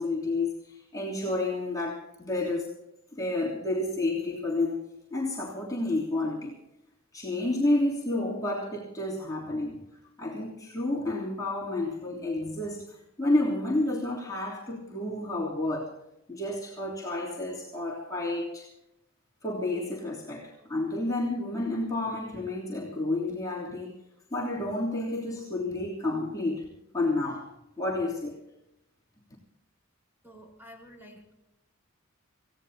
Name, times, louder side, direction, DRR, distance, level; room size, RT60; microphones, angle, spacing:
voice 1, 0.0-2.7 3.1-4.8 5.1-6.5 7.1-9.8 10.2-12.8 13.2-16.0 16.3-18.7 19.4-24.0 24.3-26.7 26.9-27.5 27.8-28.4, left 2 dB, 15° left, -5 dB, 3.2 m, -30 dB
voice 2, 30.2-31.3, equal, 10° right, -1 dB, 4.7 m, -50 dB
27.5 x 17.0 x 2.9 m, 0.87 s
head